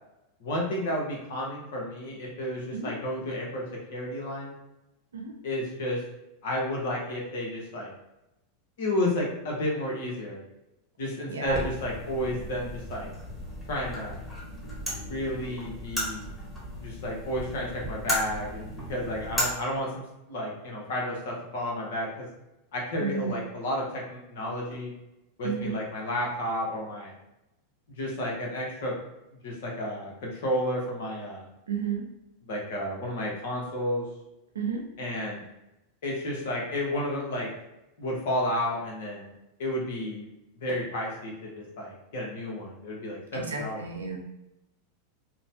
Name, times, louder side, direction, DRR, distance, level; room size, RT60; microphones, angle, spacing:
voice 1, 0.4-3.6 3.9-4.5 5.4-6.0 6.4-7.9 8.8-10.4 11.0-13.1 13.7-14.2 15.0-16.3 16.8-20.0 20.3-22.3 22.7-24.9 25.4-27.1 28.0-28.9 29.4-31.4 32.4-34.0 35.0-35.4 36.0-37.5 38.0-39.3 39.6-40.3 40.6-43.9, left 1 dB, 70° left, -2 dB, 1.0 m, -31 dB
voice 2, 11.3-11.6 23.0-23.3 25.4-25.8 31.7-32.0 34.5-34.8 43.3-44.2, right 6 dB, 90° right, 2 dB, 0.5 m, -32 dB
sound 1, 11.4-19.4, equal, ahead, 1.1 m, -35 dB
2.8 x 2.2 x 2.7 m, 0.92 s
hypercardioid pair, 100°, 0 cm